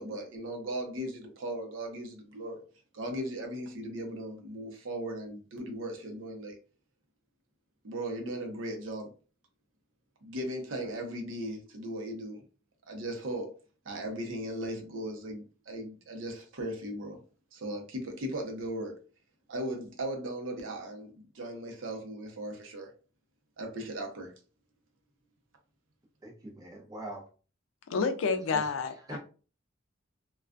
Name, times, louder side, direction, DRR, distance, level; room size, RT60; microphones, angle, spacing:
voice 1, 0.0-2.6 2.9-6.6 7.8-9.1 10.2-12.4 12.9-13.5 13.8-17.2 17.5-19.0 19.5-22.9 23.6-24.3, right 1 dB, 75° right, 0.7 m, -37 dB
voice 2, 26.2-27.2 28.5-28.6 29.1-29.2, right 1 dB, 20° right, 0.7 m, -42 dB
voice 3, 27.9-29.2, left 5 dB, 85° left, 0.4 m, -29 dB
2.3 x 2.2 x 2.4 m
head